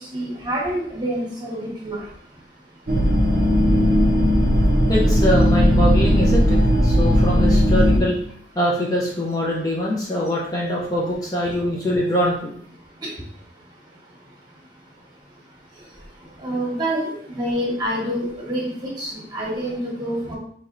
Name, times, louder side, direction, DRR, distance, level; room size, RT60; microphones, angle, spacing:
voice 1, 0.1-2.0 16.4-20.3, right 1 dB, 25° right, -4 dB, 1.1 m, -27 dB
sound 1, 2.9-8.0, equal, 55° right, 0.6 m, -17 dB
voice 2, 4.9-8.2 8.6-12.5, equal, 20° left, -4 dB, 0.5 m, -23 dB
4.2 x 3.1 x 2.5 m, 0.64 s
head